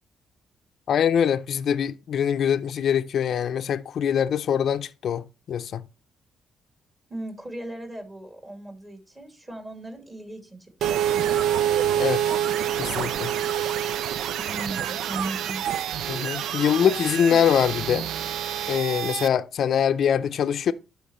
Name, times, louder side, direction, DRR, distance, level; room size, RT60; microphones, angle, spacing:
voice 1, 0.9-5.8 12.0-12.4 12.8-13.3 16.1-18.1 18.7-20.7, left 8 dB, 65° left, 0.5 m, -23 dB
voice 2, 7.1-11.4 14.4-15.6, right 1 dB, 20° right, 2.3 m, -37 dB
sound 1, 10.8-19.3, right 10 dB, 80° right, 0.4 m, -27 dB
11.5 x 4.5 x 3.1 m
cardioid pair, 95°, 0 cm